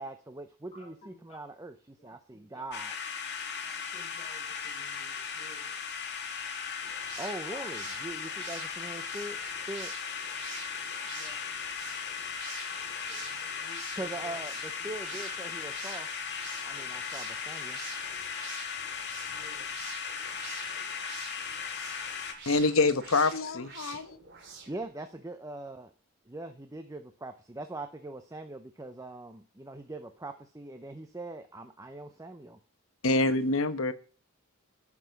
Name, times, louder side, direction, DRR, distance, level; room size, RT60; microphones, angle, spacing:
voice 1, 0.0-2.9 7.2-9.9 14.0-16.1 16.6-17.8 24.7-25.9 26.2-32.6, right 2 dB, 15° right, 7 dB, 0.7 m, -42 dB
voice 2, 0.7-1.7 2.0-2.6 3.6-5.8 7.5-7.7 11.0-12.2 13.1-14.5 19.3-19.8, equal, 30° left, -1 dB, 6.6 m, -55 dB
sound 1, 2.7-22.3, left 6 dB, 55° left, 2.0 m, -37 dB
sound 2, 6.8-24.9, right 5 dB, 60° right, 3.3 m, -48 dB
voice 3, 22.5-24.2 33.0-33.9, left 3 dB, 70° left, 11 dB, 1.1 m, -26 dB
14.5 x 6.1 x 5.9 m, 0.40 s
head